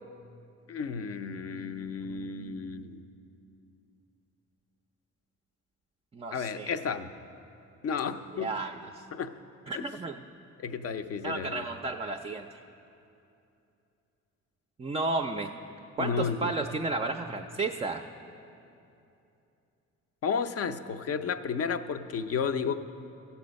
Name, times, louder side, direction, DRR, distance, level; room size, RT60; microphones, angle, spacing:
voice 1, 0.7-3.0 6.3-7.1 7.8-8.5 9.1-9.3 9.7-9.8 10.6-11.6 16.0-16.5 20.2-22.8, left 6 dB, 50° left, 10 dB, 0.6 m, -32 dB
voice 2, 1.5-2.9 6.1-6.7 8.3-9.1 9.7-10.2 11.2-12.6 14.8-15.5 16.0-18.0, right 3 dB, 20° right, 4 dB, 0.4 m, -34 dB
15.0 x 7.0 x 5.2 m, 2.7 s
cardioid pair, 90°, 30 cm